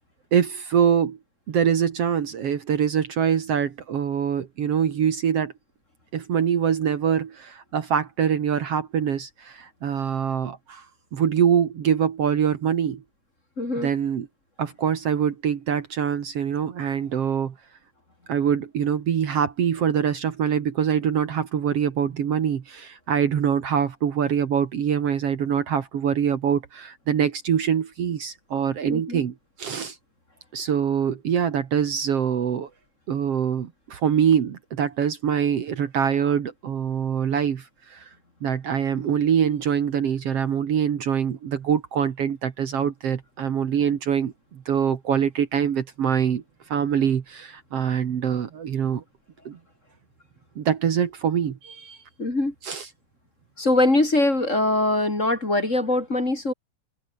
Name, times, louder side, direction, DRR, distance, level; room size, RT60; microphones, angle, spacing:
voice 1, 0.3-1.2 1.5-5.5 6.1-10.8 11.1-13.0 13.8-14.3 14.6-17.5 18.3-30.0 30.5-32.7 33.1-38.1 38.4-46.4 46.7-49.0 49.5-49.6 50.6-52.0 52.6-52.9, right 8 dB, 60° right, 2.5 m, -24 dB
voice 2, 13.6-13.9 28.9-29.2 52.2-52.5 53.6-56.5, left 2 dB, 25° left, 4.0 m, -22 dB
open air
omnidirectional pair, 3.3 m